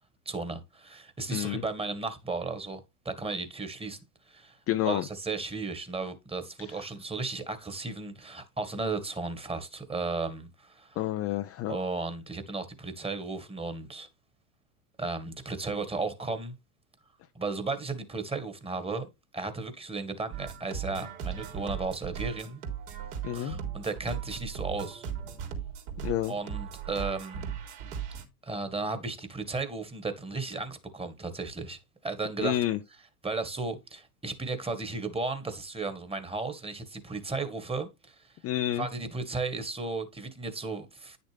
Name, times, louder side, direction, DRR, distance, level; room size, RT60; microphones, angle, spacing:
voice 1, 0.3-2.8 3.1-4.0 4.3-4.6 4.8-11.0 11.7-14.1 15.0-16.5 17.4-19.1 19.3-22.6 23.3-25.1 26.3-27.4 28.4-32.6 33.2-38.3 38.7-41.2, right 3 dB, 10° right, 1.8 m, -35 dB
voice 2, 1.3-1.6 4.7-5.0 11.0-11.8 23.2-23.5 26.0-26.3 32.4-32.8 38.4-38.9, left 13 dB, 30° left, 0.6 m, -29 dB
sound 1, 20.3-28.2, right 8 dB, 65° right, 3.4 m, -37 dB
9.9 x 6.6 x 3.4 m
hypercardioid pair, 100°, 47 cm